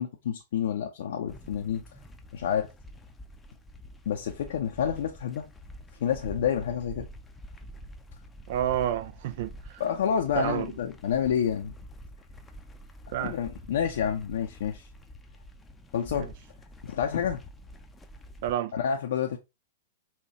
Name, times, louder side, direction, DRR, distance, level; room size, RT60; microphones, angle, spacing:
voice 1, 0.0-1.8 2.3-2.7 4.1-5.5 6.0-7.1 9.8-11.7 13.2-14.9 15.9-16.3 16.8-17.4 18.7-19.4, left 8 dB, 65° left, 0.5 m, -29 dB
sound 1, 1.3-18.5, equal, 10° left, 0.6 m, -47 dB
voice 2, 8.5-9.8 10.4-10.7 13.1-13.3 16.1-16.3 18.4-18.7, right 11 dB, 55° right, 0.4 m, -29 dB
5.6 x 2.3 x 2.8 m
figure-of-eight pair, 105°, 0 cm